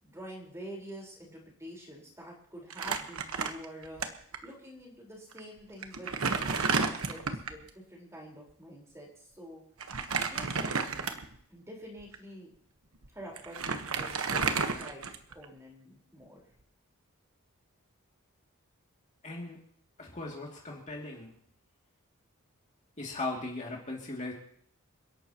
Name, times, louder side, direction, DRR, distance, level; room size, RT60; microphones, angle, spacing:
voice 1, 0.0-9.1 9.4-9.6 10.3-10.6 11.5-12.5 13.1-15.1 15.3-16.4, equal, 15° right, -2 dB, 4.4 m, -47 dB
Crumpling crinkling, 2.7-4.0 4.3-4.4 5.3-5.4 5.8-7.6 9.8-11.4 12.0-12.1 13.0-13.1 13.4-15.4, right 5 dB, 65° right, 1.2 m, -31 dB
voice 2, 19.2-19.6 20.0-21.3 23.0-24.3, left 2 dB, 30° left, -2 dB, 2.6 m, -38 dB
29.0 x 11.5 x 3.0 m, 0.64 s
head